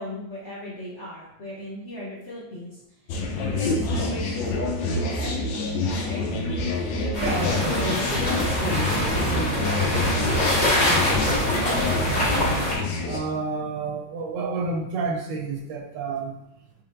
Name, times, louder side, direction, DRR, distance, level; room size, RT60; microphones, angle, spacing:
voice 1, 0.0-2.8 3.5-6.2 6.9-8.1, left 1 dB, 55° left, -7 dB, 0.7 m, -37 dB
sound 1, 3.1-13.2, left 2 dB, 75° left, 1.3 m, -27 dB
sound 2, 7.1-12.8, left 1 dB, 35° left, 1.7 m, -24 dB
voice 2, 7.2-12.4 13.1-16.4, right 4 dB, 75° right, 2 dB, 1.2 m, -32 dB
4.3 x 3.2 x 2.5 m, 0.82 s
omnidirectional pair, 2.1 m